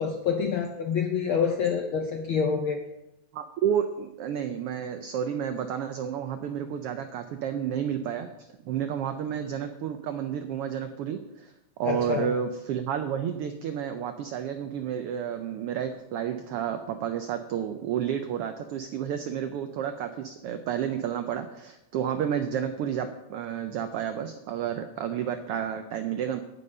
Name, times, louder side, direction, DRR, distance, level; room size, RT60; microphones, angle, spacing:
voice 1, 0.0-2.8 11.8-12.3, left 6 dB, 75° left, 4 dB, 1.2 m, -27 dB
voice 2, 3.3-11.5 11.8-26.4, right 9 dB, 90° right, 8 dB, 1.2 m, -31 dB
16.0 x 5.5 x 5.4 m, 0.94 s
omnidirectional pair, 3.3 m